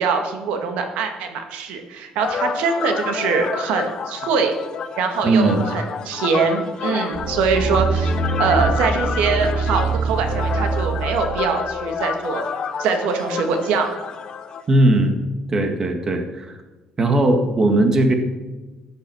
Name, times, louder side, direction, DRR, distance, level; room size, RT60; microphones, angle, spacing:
voice 1, 0.0-4.5 5.0-12.5 12.8-13.9, right 5 dB, 90° right, 5 dB, 2.2 m, -23 dB
sound 1, 2.2-14.6, left 6 dB, 40° left, 1.0 m, -29 dB
voice 2, 5.2-5.6 14.7-15.2 15.5-16.6 17.0-18.1, right 2 dB, 30° right, 6 dB, 1.8 m, -18 dB
sound 2, 7.2-11.5 12.0-12.1, right 4 dB, 45° right, 1.0 m, -24 dB
14.0 x 10.5 x 6.4 m, 1.2 s
cardioid pair, 140°, 2 cm